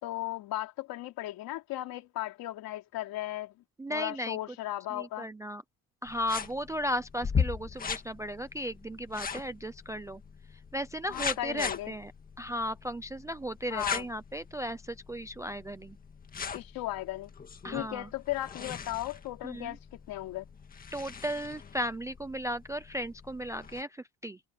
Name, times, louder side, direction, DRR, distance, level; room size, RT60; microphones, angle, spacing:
voice 1, 0.0-3.5 3.9-5.3 11.1-11.9 13.7-14.1 16.5-17.3 17.7-19.8 20.1-20.5, left 15 dB, 70° left, 3.1 m, -36 dB
voice 2, 3.8-4.4 4.9-5.6 6.0-10.2 10.7-12.1 12.4-16.0 17.6-18.1 19.4-19.8 20.9-24.4, equal, 10° right, 0.3 m, -35 dB
sound 1, 6.1-23.8, left 6 dB, 25° left, 1.7 m, -39 dB
cardioid pair, 170°, 37 cm